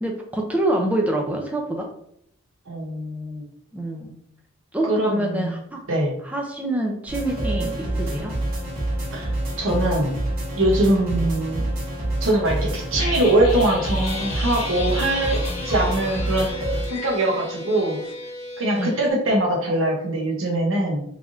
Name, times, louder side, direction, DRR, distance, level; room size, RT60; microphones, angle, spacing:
voice 1, 0.0-1.9 3.7-4.1 4.7-5.8 6.2-8.3 11.1-11.3 18.8-18.9, right 1 dB, 5° right, 1 dB, 0.4 m, -26 dB
voice 2, 2.7-3.5 4.8-5.5 5.9-6.1 9.1-9.3 9.6-10.1 10.6-11.6 12.2-16.5 16.9-18.0 18.6-21.0, right 1 dB, 65° right, -1 dB, 0.8 m, -22 dB
sound 1, 7.1-16.9, right 1 dB, 45° right, 1.5 m, -27 dB
sound 2, 12.9-17.8 18.0-18.1, left 3 dB, 90° left, 0.8 m, -35 dB
sound 3, 14.0-19.1, left 2 dB, 50° left, 1.1 m, -36 dB
3.3 x 2.6 x 3.6 m, 0.70 s
head